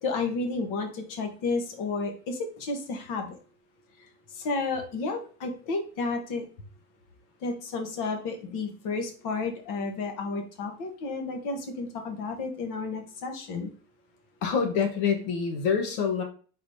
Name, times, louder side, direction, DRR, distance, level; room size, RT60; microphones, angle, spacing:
voice 1, 0.0-3.4 4.3-6.5 7.4-13.7, left 3 dB, 55° left, 5 dB, 1.1 m, -32 dB
voice 2, 14.4-16.2, left 6 dB, 90° left, 5 dB, 1.3 m, -26 dB
4.8 x 4.0 x 2.7 m, 0.42 s
cardioid pair, 155°, 39 cm